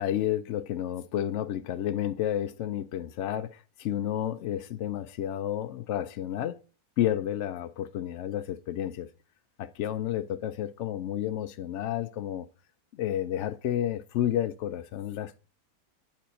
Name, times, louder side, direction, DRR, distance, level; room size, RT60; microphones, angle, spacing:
voice 1, 0.0-6.6 7.0-9.1 9.6-12.5 12.9-15.4, left 11 dB, 80° left, 0.6 m, -31 dB
9.3 x 4.4 x 5.0 m
omnidirectional pair, 1.8 m